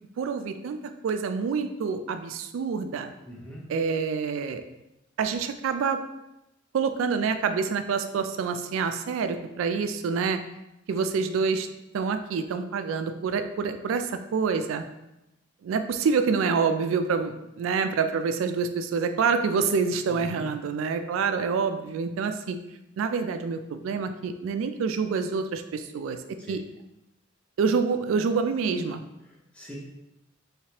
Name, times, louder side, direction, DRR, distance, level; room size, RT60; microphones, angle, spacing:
voice 1, 0.2-3.1 3.7-4.6 5.2-6.0 6.7-10.4 10.9-11.7 11.9-14.8 15.6-22.6 23.0-26.2 26.5-26.6 27.6-29.0, right 5 dB, 80° right, 9 dB, 0.3 m, -27 dB
voice 2, 3.3-3.7 20.1-20.6 26.4-26.6 29.5-29.8, equal, 5° left, -4 dB, 0.6 m, -42 dB
3.2 x 3.1 x 2.9 m, 0.92 s
head